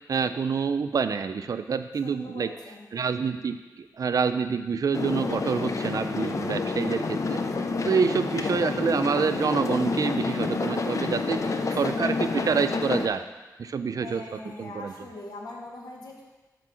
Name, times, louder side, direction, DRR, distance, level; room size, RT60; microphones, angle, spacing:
voice 1, 0.1-2.5 2.9-7.4 7.9-11.4 11.8-13.2 13.6-14.2 14.6-14.9, right 5 dB, 60° right, 10 dB, 0.4 m, -27 dB
voice 2, 2.0-2.9 11.2-11.7 14.0-16.2, left 2 dB, 80° left, -1 dB, 1.6 m, -42 dB
sound 1, 4.9-13.1, left 3 dB, 50° left, 0.6 m, -28 dB
8.4 x 4.5 x 6.2 m, 1.2 s
wide cardioid pair, 110°, 7 cm